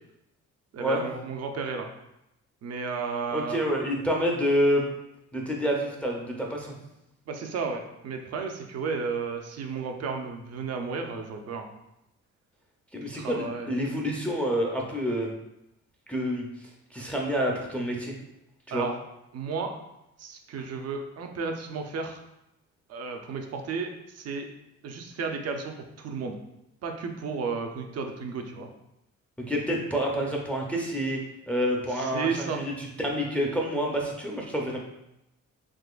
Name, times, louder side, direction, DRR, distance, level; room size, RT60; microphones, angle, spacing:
voice 1, 0.7-1.9 2.6-3.6 7.3-11.7 13.1-13.8 18.7-18.9 19.3-19.7 20.2-22.2 22.9-24.5 24.8-26.4 26.8-28.7 32.0-32.6, right 5 dB, 55° right, 4 dB, 0.5 m, -33 dB
voice 2, 3.3-4.9 5.3-6.8 12.9-15.3 16.1-16.5 16.9-18.1 18.7-18.9 29.5-31.2 31.5-34.8, equal, 5° left, -1 dB, 0.5 m, -28 dB
3.7 x 2.9 x 2.4 m, 0.86 s
cardioid pair, 90°, 30 cm